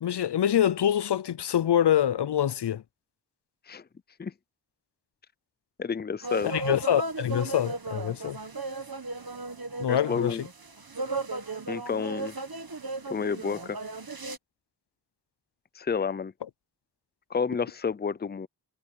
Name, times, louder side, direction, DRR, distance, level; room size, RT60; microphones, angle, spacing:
voice 1, 0.0-2.8 6.4-8.4 9.8-10.4, left 10 dB, 75° left, 0.5 m, -25 dB
voice 2, 5.8-6.5 9.9-10.4 11.7-12.4 13.1-13.8 15.7-16.3 17.3-18.5, left 6 dB, 25° left, 0.5 m, -30 dB
sound 1, 6.2-14.4, right 3 dB, 60° right, 1.7 m, -36 dB
wide cardioid pair, 40°, 40 cm